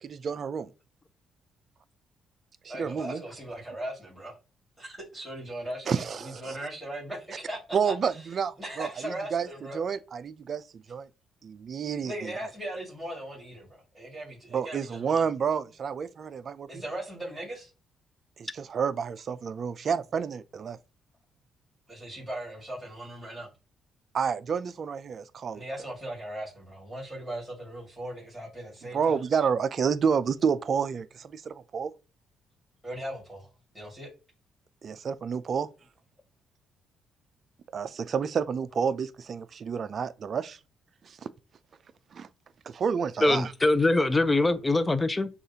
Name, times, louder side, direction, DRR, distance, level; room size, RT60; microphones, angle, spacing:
voice 1, 0.0-0.7 2.6-3.2 5.9-6.6 7.7-9.5 9.7-11.1 11.4-12.5 14.5-16.8 18.4-20.8 24.1-25.6 28.9-31.9 34.8-35.7 37.7-40.6 41.0-41.2 42.1-42.3 42.7-43.5, right 6 dB, 50° right, 0.4 m, -29 dB
voice 2, 2.7-4.4 4.8-7.6 7.8-7.9 8.6-9.8 12.0-15.2 16.7-17.7 21.9-23.5 25.5-29.2 32.8-33.5 33.7-34.1, right 1 dB, ahead, 2.3 m, -38 dB
voice 3, 43.2-45.3, left 2 dB, 20° left, 0.6 m, -23 dB
6.5 x 2.5 x 2.8 m
cardioid pair, 90°, 0 cm